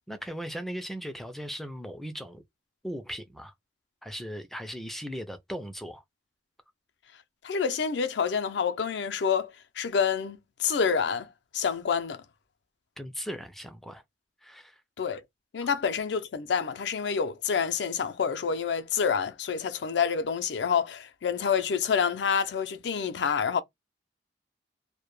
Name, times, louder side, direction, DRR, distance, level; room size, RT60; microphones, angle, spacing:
voice 1, 0.1-2.4 2.8-3.5 4.0-6.0 13.0-14.0 14.4-14.8 15.6-15.7, equal, ahead, 0.3 m, -38 dB
voice 2, 7.4-12.2 15.0-15.2 15.5-23.6, left 6 dB, 70° left, 0.4 m, -28 dB
2.1 x 2.0 x 3.0 m
head